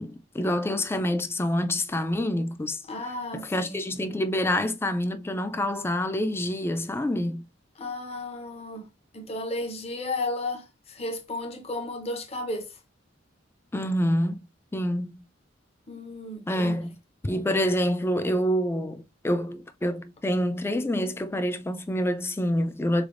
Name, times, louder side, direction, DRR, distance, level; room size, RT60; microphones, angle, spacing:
voice 1, 0.0-2.8 3.3-7.4 13.7-14.4 14.7-15.2 16.5-16.9 17.2-23.0, equal, 10° left, 0.3 m, -27 dB
voice 2, 2.9-3.8 7.8-8.9 9.1-12.7 15.9-16.8, left 2 dB, 35° left, 0.7 m, -33 dB
3.8 x 3.4 x 2.5 m
head